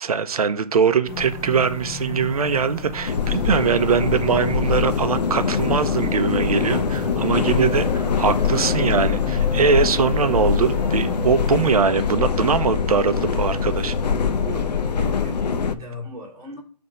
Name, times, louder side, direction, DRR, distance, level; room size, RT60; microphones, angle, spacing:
voice 1, 0.0-13.9, right 6 dB, 60° right, 0.6 m, -21 dB
sound 1, 1.0-11.8, left 2 dB, 20° left, 1.0 m, -35 dB
sound 2, 3.0-15.7, left 6 dB, 75° left, 0.7 m, -23 dB
voice 2, 14.3-16.6, left 1 dB, 5° right, 0.4 m, -36 dB
5.5 x 3.4 x 5.2 m
hypercardioid pair, 175°, 21 cm